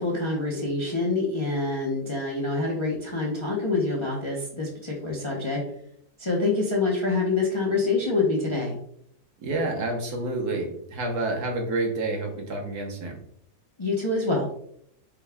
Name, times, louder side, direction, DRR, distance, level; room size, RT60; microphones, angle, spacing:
voice 1, 0.0-5.6 6.2-8.8 13.8-14.5, left 3 dB, 30° left, -3 dB, 0.5 m, -26 dB
voice 2, 9.4-13.2, right 2 dB, 75° right, 1 dB, 1.5 m, -29 dB
5.2 x 2.3 x 3.4 m, 0.70 s
omnidirectional pair, 1.7 m